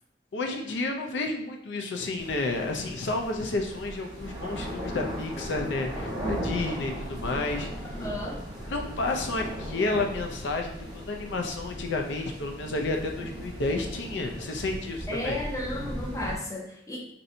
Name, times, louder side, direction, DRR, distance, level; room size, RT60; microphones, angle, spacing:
voice 1, 0.3-7.7 8.6-15.4, left 2 dB, 80° left, 3 dB, 0.5 m, -31 dB
sound 1, 2.2-16.4, equal, 25° right, 0.7 m, -37 dB
voice 2, 8.0-8.4 15.1-17.0, left 1 dB, 20° left, -1 dB, 0.6 m, -33 dB
2.7 x 2.6 x 4.2 m, 0.74 s
head